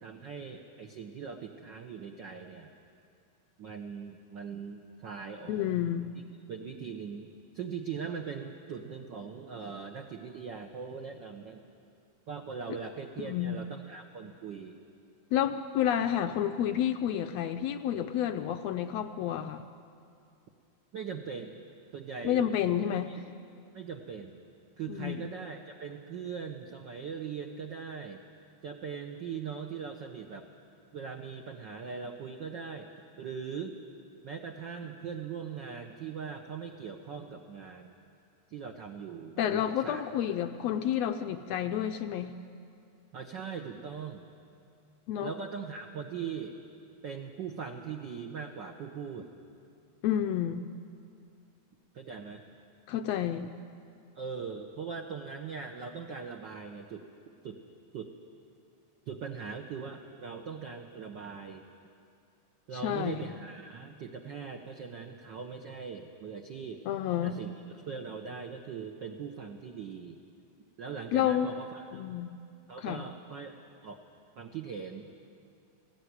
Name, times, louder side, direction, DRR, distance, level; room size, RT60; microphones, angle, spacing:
voice 1, 0.0-2.7 3.6-5.7 6.5-11.6 12.3-14.8 20.9-21.6 21.9-22.5 23.1-23.2 23.7-24.4 24.8-28.2 28.6-30.5 30.9-32.9 33.2-33.8 34.2-37.9 38.5-40.0 43.1-44.3 45.2-46.6 47.0-49.3 51.9-52.4 54.1-57.1 57.4-57.6 57.9-58.1 59.1-61.7 62.7-66.8 67.2-70.2 70.8-72.0 72.7-73.5 73.8-74.0 74.4-75.0, right 6 dB, 75° right, 3 dB, 1.0 m, -40 dB
voice 2, 5.5-6.1 13.2-13.6 15.3-19.6 22.2-23.1 24.9-25.2 39.4-42.4 45.1-45.3 50.0-50.6 52.9-53.5 62.8-63.2 66.9-67.4 71.1-71.5 71.9-72.3 72.8-73.0, left 10 dB, 75° left, 7 dB, 1.6 m, -30 dB
19.5 x 15.5 x 9.5 m, 2.4 s
omnidirectional pair, 3.4 m